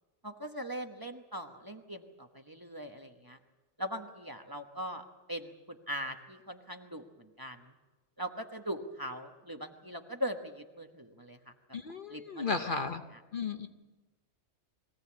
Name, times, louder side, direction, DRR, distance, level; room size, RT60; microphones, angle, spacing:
voice 1, 0.2-3.4 3.8-7.7 8.2-11.4 12.1-12.8, equal, 20° right, 4 dB, 1.1 m, -40 dB
voice 2, 11.7-13.0 13.3-13.7, left 4 dB, 50° left, 7 dB, 0.9 m, -34 dB
22.5 x 16.0 x 8.6 m, 1.2 s
omnidirectional pair, 1.3 m